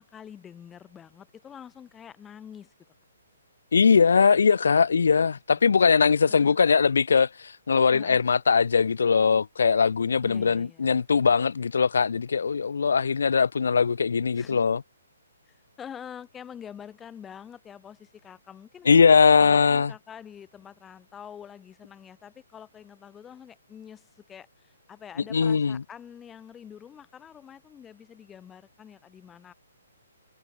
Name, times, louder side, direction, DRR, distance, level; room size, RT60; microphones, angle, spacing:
voice 1, 0.0-2.7 5.5-6.6 7.9-8.2 10.2-10.9 14.3-14.6 15.5-19.1 19.4-29.5, left 8 dB, 10° left, 6.4 m, -46 dB
voice 2, 3.7-7.3 7.7-14.8 18.9-19.9 25.3-25.8, left 5 dB, 75° left, 0.7 m, -20 dB
hypercardioid pair, 170°, 0 cm